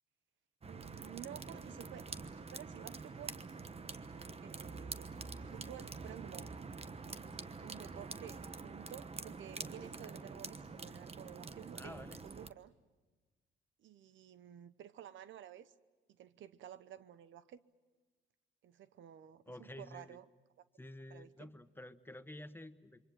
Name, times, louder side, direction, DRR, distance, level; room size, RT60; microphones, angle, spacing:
sound 1, 0.6-12.5, right 4 dB, 30° right, 1.1 m, -46 dB
voice 1, 0.6-3.4 4.4-5.1 5.3-6.5 7.6-12.7 13.8-15.7 16.1-17.6 18.6-20.2 21.1-21.5, right 11 dB, 70° right, 15 dB, 0.9 m, -52 dB
voice 2, 11.8-12.2 19.5-20.2 20.8-23.0, left 1 dB, 10° left, 11 dB, 1.1 m, -50 dB
27.5 x 23.5 x 7.6 m, 1.3 s
cardioid pair, 90°, 20 cm